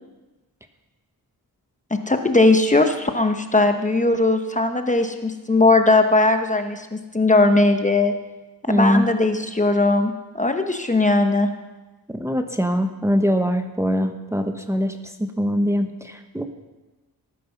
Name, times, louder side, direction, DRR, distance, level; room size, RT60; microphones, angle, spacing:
voice 1, 1.9-8.1 8.7-11.5, left 2 dB, 20° left, 6 dB, 1.0 m, -19 dB
voice 2, 8.7-9.1 12.1-16.5, equal, 5° right, 5 dB, 1.0 m, -22 dB
18.5 x 9.3 x 5.8 m, 1.1 s
wide cardioid pair, 105°, 39 cm